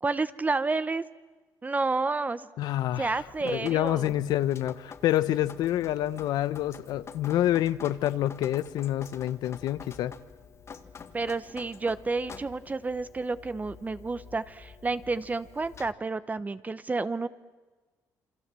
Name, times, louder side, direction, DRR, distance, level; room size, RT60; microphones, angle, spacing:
voice 1, 0.0-1.0 1.6-2.5 3.0-4.1 11.1-17.3, right 3 dB, 25° right, 13 dB, 0.9 m, -30 dB
voice 2, 2.6-10.1, left 13 dB, 85° left, 15 dB, 1.0 m, -27 dB
Drip, 2.9-15.9, left 6 dB, 45° left, 1.7 m, -48 dB
28.5 x 24.5 x 7.7 m, 1.3 s
cardioid pair, 95°, 7 cm